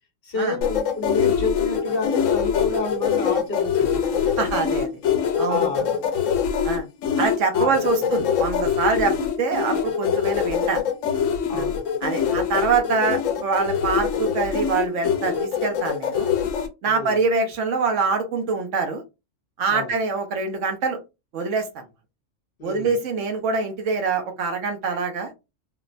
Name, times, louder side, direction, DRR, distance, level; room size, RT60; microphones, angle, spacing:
voice 1, 0.2-4.7 5.1-5.9 7.5-7.7 8.0-8.1 11.5-11.9 16.9-17.2 19.7-19.9 22.6-23.0, left 3 dB, 50° left, 1.0 m, -30 dB
sound 1, 0.6-16.7, left 7 dB, 80° left, 0.9 m, -23 dB
voice 2, 4.4-4.9 5.4-5.7 6.6-6.9 7.2-10.8 11.5-11.7 12.0-16.3 16.8-19.0 19.6-21.0 21.3-21.8 22.6-25.3, right 4 dB, 75° right, 1.1 m, -24 dB
3.5 x 2.0 x 2.5 m
omnidirectional pair, 1.3 m